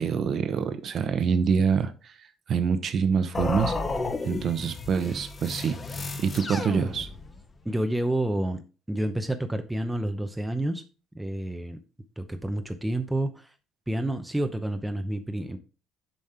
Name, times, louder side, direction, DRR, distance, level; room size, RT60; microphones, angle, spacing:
voice 1, 0.0-3.7 4.2-5.8 6.2-7.1, right 6 dB, 45° right, 0.9 m, -26 dB
sound 1, 3.3-7.5, left 3 dB, 25° left, 0.9 m, -32 dB
voice 2, 7.6-8.6 8.9-10.8 11.1-11.8 12.2-13.5 13.9-15.6, right 1 dB, 5° right, 0.7 m, -29 dB
7.3 x 5.2 x 4.3 m
cardioid pair, 140°, 0 cm